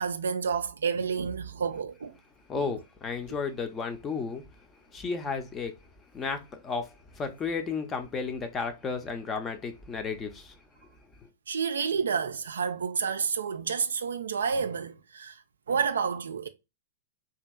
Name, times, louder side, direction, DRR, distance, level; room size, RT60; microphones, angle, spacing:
voice 1, 0.0-2.2 2.5-2.7 11.5-15.4 15.7-16.5, right 6 dB, 70° right, 0.3 m, -30 dB
voice 2, 2.5-4.5 4.9-5.7 6.1-10.5, left 5 dB, 20° left, 0.5 m, -33 dB
2.8 x 2.7 x 2.3 m
figure-of-eight pair, 105°, 0 cm